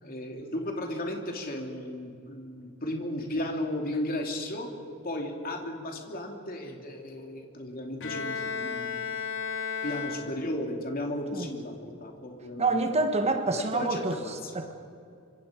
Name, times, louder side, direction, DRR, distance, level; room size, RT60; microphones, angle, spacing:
voice 1, 0.0-4.7 5.0-9.1 9.8-13.1 13.6-14.5, left 1 dB, 40° left, 2 dB, 2.8 m, -35 dB
Bowed string instrument, 8.0-10.7, left 6 dB, 60° left, 2.6 m, -34 dB
voice 2, 12.6-14.2 14.5-14.7, right 3 dB, 30° right, 6 dB, 1.5 m, -27 dB
25.5 x 25.5 x 5.2 m, 2.5 s
head